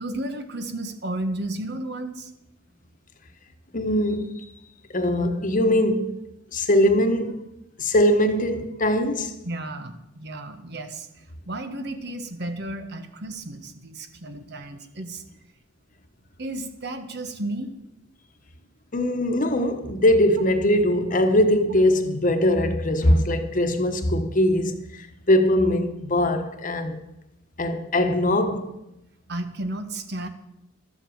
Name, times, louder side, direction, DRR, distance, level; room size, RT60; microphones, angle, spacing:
voice 1, 0.0-2.3 9.4-15.2 16.4-17.7 29.3-30.3, right 1 dB, 60° right, 1.4 m, -33 dB
voice 2, 3.7-4.4 4.9-6.1 6.5-7.5 7.8-9.3 18.9-27.0 27.6-28.6, left 1 dB, 45° left, 1.2 m, -21 dB
12.5 x 7.9 x 7.9 m
head